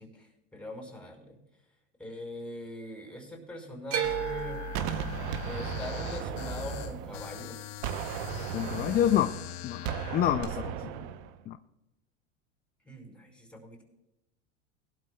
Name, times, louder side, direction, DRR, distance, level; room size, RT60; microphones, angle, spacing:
voice 1, 0.0-1.4 2.0-4.7 5.4-7.6 10.5-11.2 12.8-13.8, left 1 dB, 5° left, 1 dB, 4.9 m, -43 dB
sound 1, 3.9-8.1 8.4-9.1 10.4-10.5, right 9 dB, 35° right, 1.7 m, -36 dB
sound 2, 4.0-10.2, left 10 dB, 55° left, 0.9 m, -41 dB
Gunshot gunfire, 4.7-7.5 7.8-11.4, right 9 dB, 55° right, 0.9 m, -36 dB
voice 2, 8.5-9.3 9.6-10.9 11.5-11.6, left 11 dB, 25° left, 10 dB, 0.4 m, -28 dB
21.0 x 12.0 x 2.3 m, 0.93 s
supercardioid pair, 120°, 39 cm